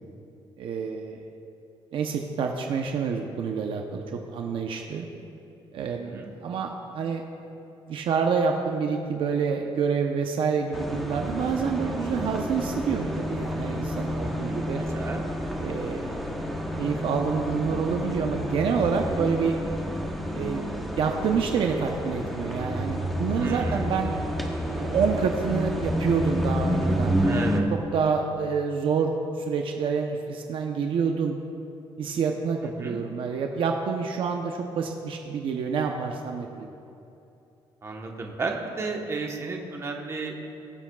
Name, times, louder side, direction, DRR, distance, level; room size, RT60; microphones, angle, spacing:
voice 1, 0.6-1.2 1.9-4.0 4.3-5.1 5.7-7.2 7.9-14.8 15.6-16.2 16.8-19.6 20.3-20.7 21.0-24.1 24.8-31.3 32.0-36.7, right 6 dB, 60° right, 3 dB, 0.7 m, -27 dB
voice 2, 5.8-6.3 14.4-14.6 14.9-15.2 23.4-23.9 27.2-27.6 32.8-33.0 37.8-40.4, right 3 dB, 30° right, 1 dB, 1.0 m, -33 dB
sound 1, 10.7-27.6, equal, ahead, 0.8 m, -29 dB
21.5 x 7.3 x 2.3 m, 2.8 s
cardioid pair, 155°, 10 cm